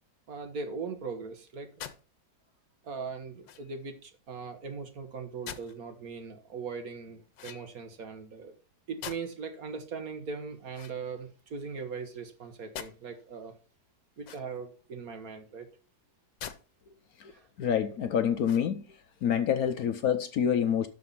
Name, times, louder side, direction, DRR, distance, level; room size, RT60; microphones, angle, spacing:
voice 1, 0.3-1.7 2.8-8.5 8.9-13.5 14.2-15.7 17.3-17.5, right 5 dB, 55° right, 1.6 m, -40 dB
sound 1, 1.8-2.0 3.4-3.8 5.5-5.8 7.3-7.9 9.0-9.5 10.7-11.6 12.7-12.9 14.2-14.7 16.4-16.6 17.1-17.2 18.4-18.9, left 9 dB, 80° left, 1.5 m, -44 dB
voice 2, 17.6-18.8 19.2-20.9, left 8 dB, 65° left, 1.0 m, -27 dB
12.5 x 4.2 x 5.5 m
omnidirectional pair, 1.9 m